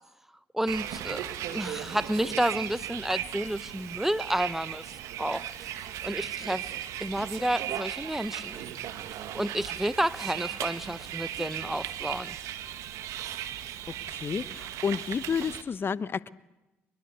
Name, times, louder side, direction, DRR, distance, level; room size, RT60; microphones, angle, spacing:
voice 1, 0.5-4.8 5.2-5.5 6.0-6.7 7.0-8.6 9.3-12.4, right 1 dB, 5° right, 16 dB, 1.2 m, -30 dB
Bus, 0.7-15.6, right 11 dB, 70° right, 1.6 m, -37 dB
voice 2, 14.1-16.3, left 6 dB, 45° left, 18 dB, 1.0 m, -30 dB
22.0 x 22.0 x 8.2 m, 1.0 s
hypercardioid pair, 55°, 6 cm